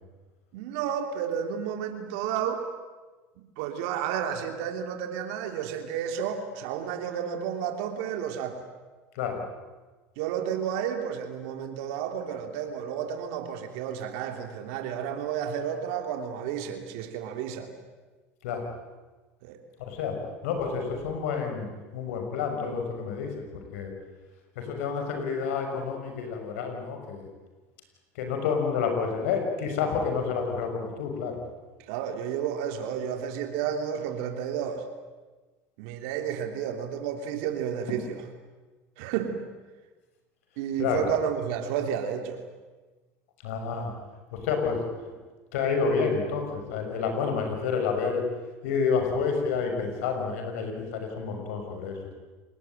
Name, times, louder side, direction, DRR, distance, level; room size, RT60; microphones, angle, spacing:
voice 1, 0.5-2.6 3.6-8.6 10.2-17.7 19.4-19.6 31.9-34.8 35.8-38.2 39.0-39.4 40.6-42.4, right 8 dB, 75° right, 5 dB, 3.2 m, -31 dB
voice 2, 19.9-20.2 20.4-21.7 21.9-23.4 23.7-23.9 24.6-27.2 28.2-31.4 37.9-38.0 40.8-41.1 43.4-43.9 44.3-44.8 45.5-48.2 48.6-52.1, left 5 dB, 80° left, 4 dB, 6.5 m, -29 dB
29.0 x 20.0 x 9.1 m, 1.3 s
supercardioid pair, 100°, 7 cm